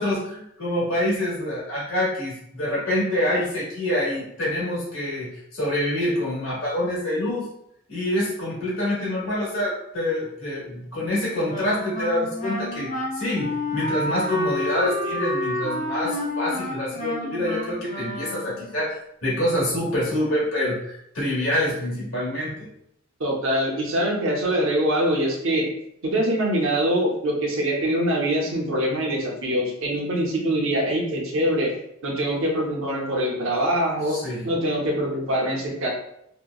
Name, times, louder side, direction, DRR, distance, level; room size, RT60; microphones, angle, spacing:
voice 1, 0.0-7.5 7.9-22.6 34.0-34.5, left 1 dB, 65° left, -5 dB, 1.2 m, -26 dB
Wind instrument woodwind instrument, 11.4-18.8, left 1 dB, 35° left, 0.4 m, -29 dB
voice 2, 23.2-25.7 26.0-31.7 32.0-34.2 34.4-35.9, right 1 dB, 65° right, -1 dB, 0.7 m, -24 dB
2.7 x 2.2 x 2.3 m, 0.75 s
head